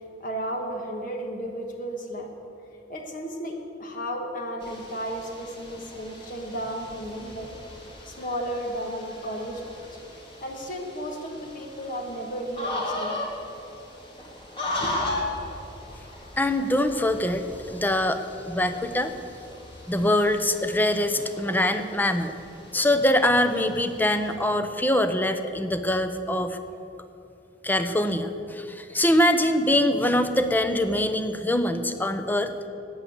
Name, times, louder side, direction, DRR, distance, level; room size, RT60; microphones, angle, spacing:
voice 1, 0.2-2.3 2.9-7.5 8.1-9.6 10.4-13.2 14.8-14.9, equal, 50° left, 2 dB, 1.6 m, -33 dB
sound 1, 4.6-24.4, left 2 dB, 30° left, 2.7 m, -38 dB
voice 2, 16.4-19.1 19.9-22.3 22.7-26.6 27.6-32.5, left 1 dB, 10° left, 9 dB, 0.7 m, -23 dB
13.5 x 9.3 x 8.0 m, 2.7 s
head